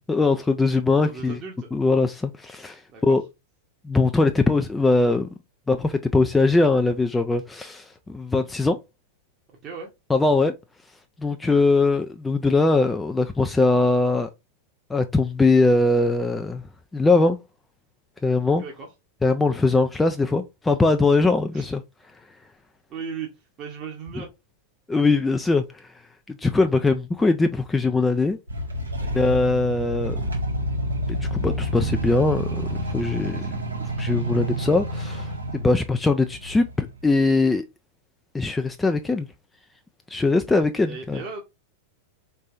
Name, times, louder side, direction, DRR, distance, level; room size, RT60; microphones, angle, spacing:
voice 1, 0.1-1.4 1.7-3.2 3.8-5.3 5.7-8.8 10.1-10.5 11.2-14.3 14.9-16.6 16.9-17.4 18.2-18.6 19.2-21.8 24.9-25.9 26.3-28.4 29.1-30.2 31.1-33.6 34.0-37.6 38.3-39.3 40.1-41.2, left 3 dB, 10° left, 0.3 m, -21 dB
voice 2, 0.9-1.7 2.9-3.2 9.6-9.9 18.4-18.9 21.5-21.7 22.9-23.3 23.6-24.3 29.0-29.2 33.4-33.5 40.5-41.4, right 5 dB, 30° right, 0.9 m, -37 dB
sound 1, 28.5-37.4, right 1 dB, 75° right, 1.0 m, -29 dB
4.3 x 3.3 x 2.5 m
figure-of-eight pair, 90°, 0 cm